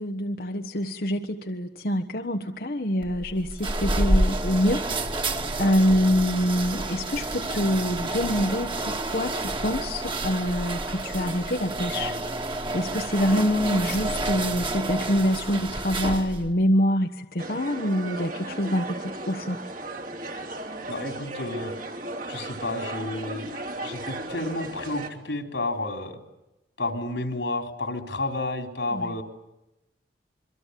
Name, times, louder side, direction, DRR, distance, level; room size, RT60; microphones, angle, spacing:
voice 1, 0.0-5.3 5.6-12.1 12.5-19.6 28.9-29.1, equal, 55° left, 5 dB, 1.3 m, -26 dB
sound 1, 3.0-16.5, right 2 dB, 30° right, 2.5 m, -29 dB
sound 2, 17.4-25.1, right 2 dB, 50° right, 3.4 m, -35 dB
voice 2, 20.9-21.7 22.3-23.6 23.8-26.2 26.8-29.2, left 2 dB, 85° left, 5 dB, 4.2 m, -31 dB
27.0 x 24.5 x 8.4 m, 0.94 s
head